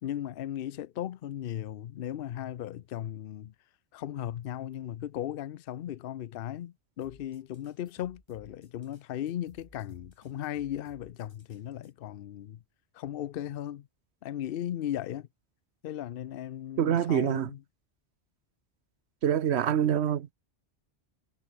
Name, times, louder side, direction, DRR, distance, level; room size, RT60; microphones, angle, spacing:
voice 1, 0.0-3.5 3.9-12.6 12.9-13.9 14.2-15.3 15.8-17.6, left 11 dB, 65° left, 0.8 m, -37 dB
sound 1, 7.0-11.9, left 1 dB, 25° left, 5.4 m, -60 dB
voice 2, 16.8-17.5 19.2-20.3, right 9 dB, 90° right, 1.1 m, -25 dB
omnidirectional pair, 1.1 m